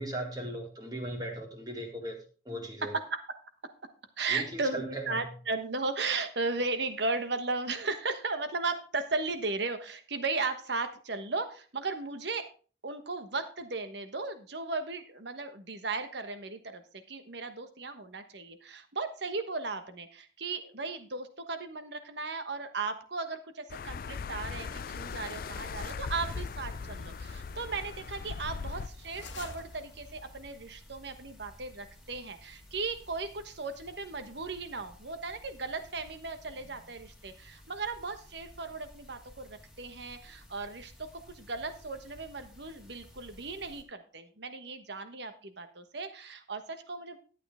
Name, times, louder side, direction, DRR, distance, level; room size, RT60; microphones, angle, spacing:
voice 1, 0.0-2.2 2.5-2.9 4.3-5.3, right 1 dB, 20° right, 2 dB, 2.2 m, -37 dB
voice 2, 2.8-3.2 4.2-12.5 12.8-47.2, right 3 dB, 65° right, 9 dB, 1.2 m, -36 dB
sound 1, 23.7-28.9, left 5 dB, 50° left, 0.4 m, -39 dB
sound 2, 25.1-30.7, left 3 dB, 75° left, 1.3 m, -51 dB
sound 3, 26.0-43.8, left 1 dB, ahead, 1.9 m, -55 dB
11.5 x 8.7 x 3.6 m, 0.38 s
head